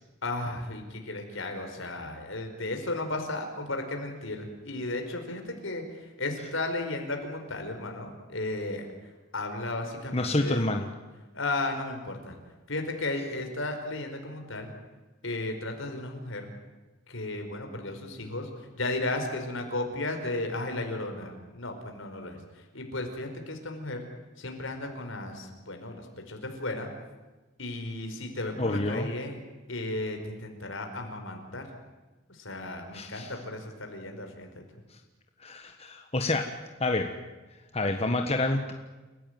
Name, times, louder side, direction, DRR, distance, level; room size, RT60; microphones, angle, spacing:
voice 1, 0.2-8.9 9.3-10.6 11.3-12.4 12.7-14.7 15.2-16.5 17.1-24.1 24.4-26.9 27.6-29.4 29.7-31.6 32.3-34.6 38.0-38.2, left 2 dB, 70° left, 4 dB, 5.1 m, -34 dB
voice 2, 10.1-10.9 28.6-29.1 32.9-33.3 34.9-35.0 35.4-36.5 36.8-37.1 37.7-38.7, left 2 dB, 30° left, 4 dB, 1.4 m, -28 dB
29.5 x 16.0 x 9.5 m, 1.2 s
head